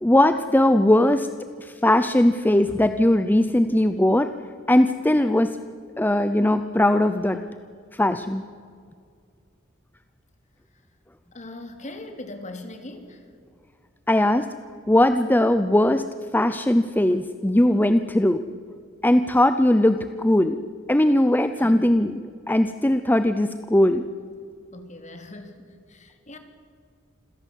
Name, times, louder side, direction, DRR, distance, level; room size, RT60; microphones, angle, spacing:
voice 1, 0.0-1.3 1.6-4.3 4.7-5.6 6.0-7.4 7.9-8.4 14.1-14.5 14.9-16.1 16.3-18.4 19.0-22.2 22.5-24.0, left 1 dB, 10° left, 10 dB, 0.6 m, -19 dB
voice 2, 11.3-13.3 21.6-21.9 24.7-26.4, left 2 dB, 40° left, 6 dB, 2.7 m, -40 dB
26.5 x 16.5 x 8.3 m, 2.2 s
head